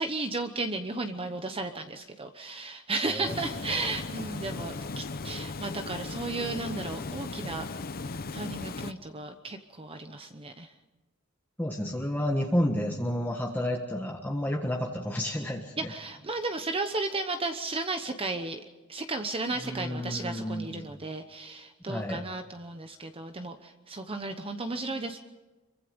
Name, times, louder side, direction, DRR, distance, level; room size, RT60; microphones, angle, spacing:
voice 1, 0.0-7.6 8.3-10.7 15.8-18.6 18.9-25.2, right 3 dB, 25° right, 6 dB, 1.0 m, -34 dB
voice 2, 3.1-3.4 11.6-15.9 19.5-20.9 21.9-22.2, left 1 dB, 10° left, 0 dB, 1.5 m, -31 dB
Water, 3.3-8.9, left 3 dB, 45° left, 0.8 m, -37 dB
26.0 x 23.5 x 5.3 m, 1.2 s
head